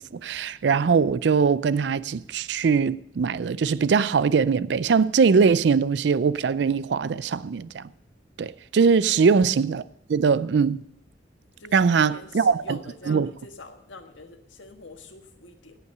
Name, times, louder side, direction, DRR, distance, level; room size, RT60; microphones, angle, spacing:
voice 1, 0.2-7.9 8.4-9.8 10.1-10.8 11.7-12.8 13.1-13.3, right 5 dB, 65° right, 0.4 m, -21 dB
voice 2, 11.6-15.8, left 3 dB, 85° left, 1.5 m, -45 dB
17.0 x 5.9 x 6.6 m
head